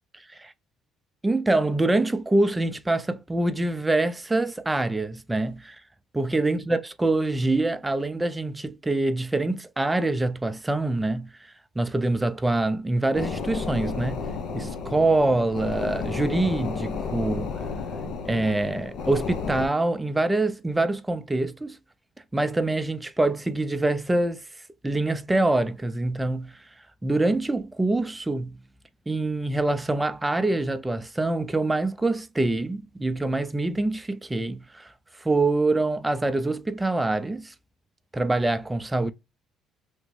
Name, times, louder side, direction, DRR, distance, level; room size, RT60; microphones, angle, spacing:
voice 1, 1.2-5.8 6.1-11.3 11.8-14.2 14.5-17.5 18.3-21.8 22.3-24.4 24.8-26.5 27.0-28.6 29.1-34.9 35.2-37.5 38.1-39.1, right 2 dB, 15° right, 0.4 m, -25 dB
sound 1, 13.1-19.7, left 5 dB, 65° left, 0.7 m, -32 dB
3.5 x 2.2 x 3.1 m
supercardioid pair, 80°, 0 cm